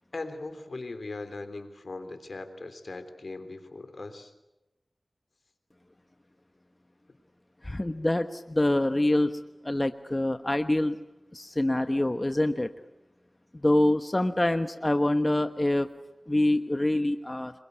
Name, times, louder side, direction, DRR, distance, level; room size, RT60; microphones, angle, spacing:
voice 1, 0.1-4.3, left 3 dB, 70° left, 9 dB, 3.4 m, -39 dB
voice 2, 7.6-11.0 11.3-12.7 13.5-15.9 16.3-17.5, left 1 dB, 30° left, 8 dB, 1.3 m, -25 dB
27.5 x 22.0 x 8.3 m, 0.98 s
cardioid pair, 40°, 0 cm